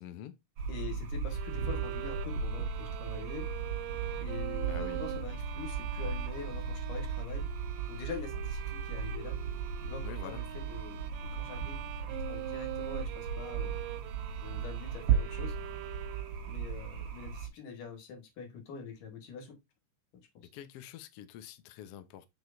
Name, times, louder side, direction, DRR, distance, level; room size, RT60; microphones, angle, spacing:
voice 1, 0.0-0.3 4.7-5.0 10.0-10.4 20.5-22.3, left 11 dB, 90° left, 1.3 m, -46 dB
sound 1, 0.6-17.5, right 6 dB, 60° right, 2.0 m, -36 dB
voice 2, 0.7-3.5 4.2-7.5 7.9-9.4 9.8-13.8 14.4-15.5 16.4-19.6 20.1-20.5, left 6 dB, 75° left, 3.2 m, -45 dB
Bowed string instrument, 1.3-16.6, right 16 dB, 85° right, 2.3 m, -44 dB
7.0 x 6.1 x 2.6 m
omnidirectional pair, 3.9 m